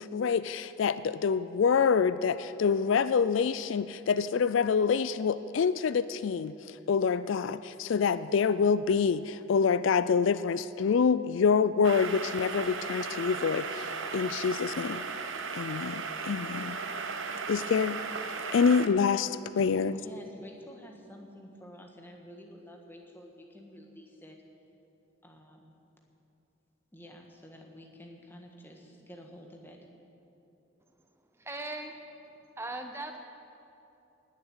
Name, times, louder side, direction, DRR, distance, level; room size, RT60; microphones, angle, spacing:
voice 1, 0.0-6.5 6.9-15.0 15.5-16.8 17.5-18.0 18.5-20.0, left 6 dB, 70° left, 15 dB, 0.4 m, -26 dB
sound 1, 11.8-18.9, right 4 dB, 75° right, 1.0 m, -36 dB
voice 2, 19.9-24.4 25.2-25.7 26.9-29.9, equal, 10° left, 1 dB, 1.6 m, -50 dB
voice 3, 31.4-32.0 32.6-33.2, right 2 dB, 15° right, 5 dB, 0.7 m, -38 dB
19.0 x 7.4 x 8.8 m, 2.8 s
head